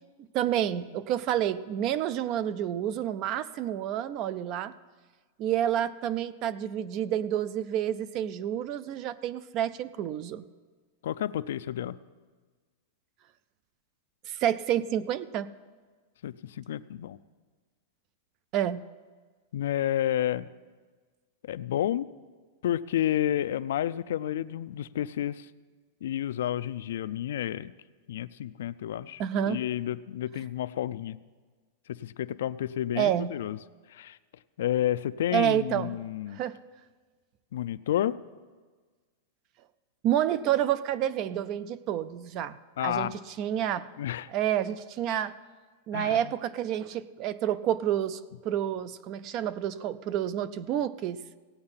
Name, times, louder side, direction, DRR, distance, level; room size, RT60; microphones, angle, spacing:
voice 1, 0.3-4.7 5.4-10.5 14.3-15.5 18.5-18.8 29.2-29.6 33.0-33.3 35.3-35.9 36.3-36.6 40.0-43.9 44.3-45.3 45.9-51.2, right 10 dB, 30° right, 17 dB, 0.4 m, -29 dB
voice 2, 11.0-12.0 16.2-17.2 19.5-20.5 21.4-22.1 22.6-25.5 26.0-27.7 28.1-31.2 31.9-33.6 33.9-34.2 34.6-36.4 37.5-38.2 42.8-43.1 44.0-44.3 45.9-46.2, left 11 dB, 70° left, 15 dB, 0.4 m, -30 dB
16.5 x 8.7 x 5.7 m, 1.4 s
supercardioid pair, 175°, 0 cm